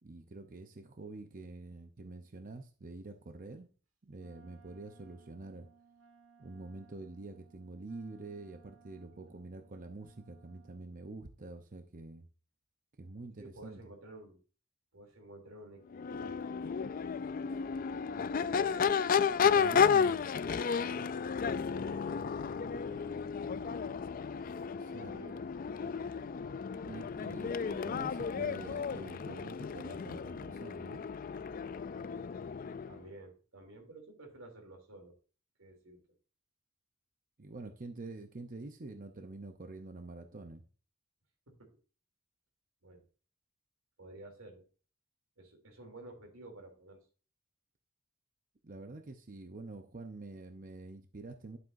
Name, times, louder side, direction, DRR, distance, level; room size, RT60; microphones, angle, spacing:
voice 1, 0.0-3.7 4.0-5.7 6.4-12.3 13.0-13.8 19.4-20.3 24.7-25.1 26.8-31.0 37.4-40.6 48.6-51.6, right 2 dB, 40° right, 7 dB, 0.7 m, -47 dB
Wind instrument woodwind instrument, 4.1-11.0, right 6 dB, 65° right, 1.8 m, -63 dB
voice 2, 13.4-14.4 14.9-17.0 17.4-17.8 18.4-18.7 19.3-20.1 20.4-23.9 25.0-25.5 25.8-26.3 32.8-35.2 35.6-36.0 41.5-41.6 42.8-43.0 44.0-44.6 45.4-47.0, right 1 dB, 90° right, 4 dB, 3.0 m, -53 dB
Crowd / Race car auto racing / Accelerating revving vroom, 15.9-33.0, left 6 dB, 40° left, 0.3 m, -33 dB
11.5 x 7.7 x 2.6 m, 0.37 s
head